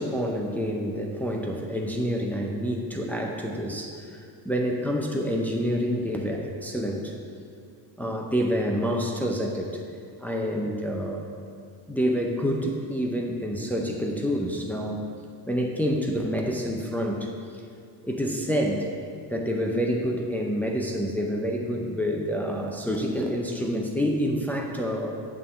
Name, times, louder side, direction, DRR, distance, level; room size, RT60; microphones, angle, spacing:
voice 1, 0.0-4.2 4.4-7.1 8.0-9.8 10.2-11.3 11.9-15.1 15.5-17.6 18.0-18.9 19.3-25.2, equal, 5° left, 0 dB, 0.5 m, -28 dB
8.3 x 3.8 x 6.7 m, 2.3 s
cardioid pair, 125°, 41 cm